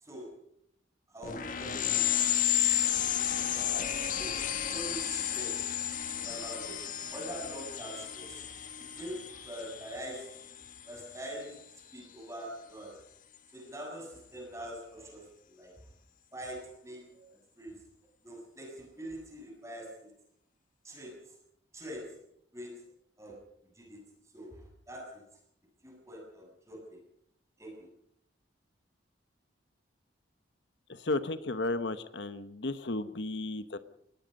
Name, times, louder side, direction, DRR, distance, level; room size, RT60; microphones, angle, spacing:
voice 1, 0.0-0.3 1.1-2.3 3.4-4.4 4.7-5.7 6.0-8.5 8.8-10.3 10.8-11.6 11.9-13.0 13.5-15.3 15.5-15.7 16.3-17.2 17.6-17.8 18.2-20.1 20.8-21.2 21.7-22.2 22.5-22.8 23.2-23.4 23.8-24.1 24.3-25.2 25.8-27.0 27.6-27.9, right 1 dB, 15° right, 0 dB, 7.3 m, -44 dB
sound 1, 1.2-11.4, left 10 dB, 45° left, 1.8 m, -32 dB
voice 2, 30.9-33.8, left 2 dB, 70° left, 11 dB, 1.1 m, -34 dB
24.5 x 20.0 x 5.4 m, 0.72 s
head